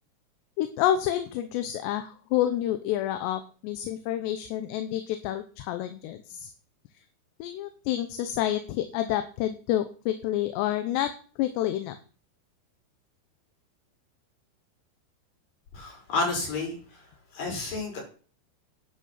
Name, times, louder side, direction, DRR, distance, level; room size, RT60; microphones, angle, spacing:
voice 1, 0.6-6.5 7.4-11.1 11.4-12.0, left 12 dB, 80° left, 9 dB, 3.0 m, -28 dB
voice 2, 15.7-16.8 17.3-18.0, left 3 dB, 50° left, 0 dB, 6.9 m, -30 dB
11.0 x 10.5 x 5.8 m, 0.40 s
omnidirectional pair, 5.0 m